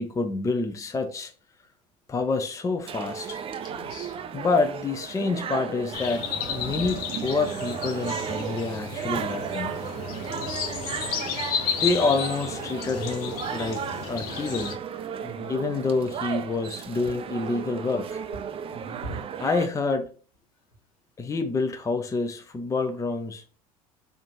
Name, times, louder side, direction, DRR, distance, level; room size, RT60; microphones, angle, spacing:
voice 1, 0.0-1.3 2.1-3.4 4.3-9.7 11.8-13.8 14.1-14.8 15.5-18.2 19.4-20.1 21.2-23.4, left 3 dB, 15° left, 0.6 m, -27 dB
sound 1, 2.9-19.7, right 8 dB, 30° right, 0.4 m, -35 dB
voice 2, 3.6-4.2 6.5-7.0 10.2-10.8 15.2-15.6 17.0-17.1 18.7-19.2, equal, 75° left, 1.5 m, -39 dB
sound 2, 5.9-14.8, left 7 dB, 55° left, 0.7 m, -33 dB
3.5 x 2.5 x 4.3 m
hypercardioid pair, 70°, 18 cm